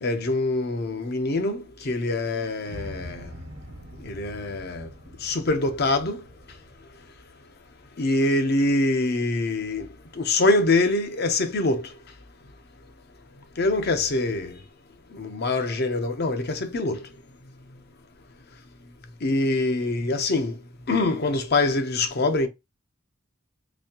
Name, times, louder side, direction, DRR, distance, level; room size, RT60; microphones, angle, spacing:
voice 1, 0.0-3.3 4.0-4.9 5.2-6.2 8.0-9.9 10.1-11.9 13.6-14.6 15.1-17.1 19.2-20.6 20.9-22.5, left 2 dB, 50° left, 0.7 m, -24 dB
sound 1, 2.6-8.8, equal, 80° right, 1.1 m, -44 dB
4.1 x 2.8 x 2.8 m
head